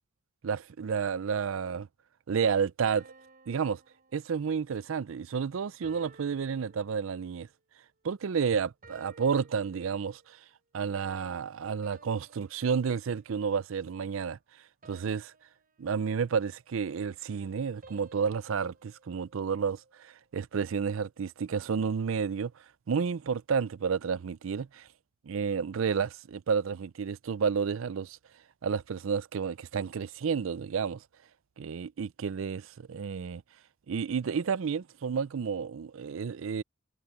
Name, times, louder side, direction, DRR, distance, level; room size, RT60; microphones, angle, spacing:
voice 1, 0.4-1.9 2.3-3.1 3.5-3.8 4.1-7.5 8.0-10.4 10.7-14.4 14.8-15.3 15.8-24.9 25.2-28.2 28.6-31.0 31.6-33.4 33.9-36.6, right 6 dB, 70° right, 0.4 m, -31 dB
sound 1, 2.8-4.8 5.8-7.5 8.8-10.4 11.8-13.5 14.8-16.4 17.8-20.2, right 3 dB, 45° right, 7.2 m, -58 dB
head